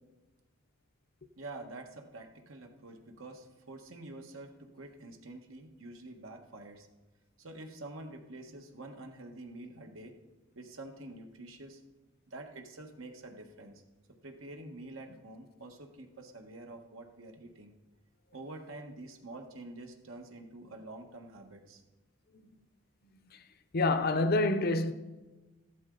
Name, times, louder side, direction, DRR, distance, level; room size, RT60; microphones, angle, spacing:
voice 1, 1.4-6.9 7.4-10.2 10.5-11.8 12.3-13.8 14.2-17.7 18.3-21.8, right 2 dB, 85° right, 1.5 m, -47 dB
voice 2, 23.7-24.9, left 2 dB, 50° left, 0.7 m, -27 dB
15.0 x 12.0 x 3.9 m
head